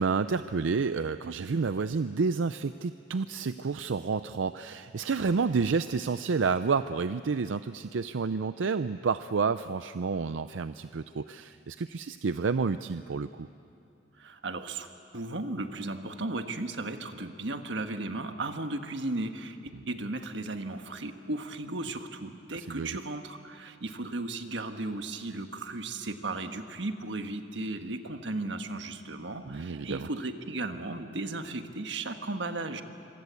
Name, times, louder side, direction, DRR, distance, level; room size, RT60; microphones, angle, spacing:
voice 1, 0.0-13.5 22.5-23.0 29.5-30.1, right 5 dB, 85° right, 12 dB, 0.5 m, -30 dB
voice 2, 14.2-14.9 15.1-32.8, right 2 dB, 65° right, 7 dB, 1.5 m, -35 dB
25.5 x 24.5 x 8.2 m, 2.5 s
head